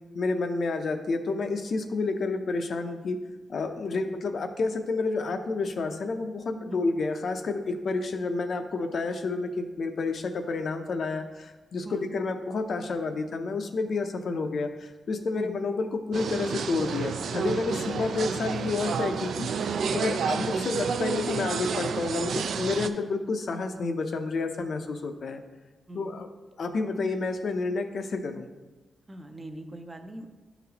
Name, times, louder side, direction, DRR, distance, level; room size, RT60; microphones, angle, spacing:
voice 1, 0.1-3.2 3.5-19.5 19.9-25.4 25.9-26.3 26.6-28.5, left 3 dB, 55° left, 6 dB, 0.5 m, -30 dB
sound 1, 16.1-22.9, right 6 dB, 75° right, 0.3 m, -30 dB
voice 2, 29.1-30.3, right 1 dB, 20° right, 5 dB, 0.5 m, -41 dB
10.5 x 3.9 x 2.8 m, 1.2 s
wide cardioid pair, 155°, 0 cm